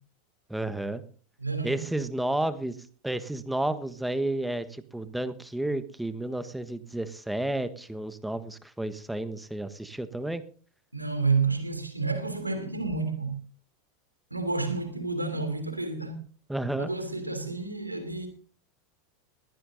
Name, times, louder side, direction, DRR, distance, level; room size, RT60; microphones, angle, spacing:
voice 1, 0.5-1.0 1.6-2.8 3.0-10.4 16.5-16.9, right 1 dB, 5° right, 1.3 m, -31 dB
voice 2, 1.4-1.8 10.9-13.3 14.3-16.2 16.8-18.3, right 4 dB, 90° right, 3.0 m, -30 dB
21.5 x 15.5 x 2.7 m
figure-of-eight pair, 85°, 0 cm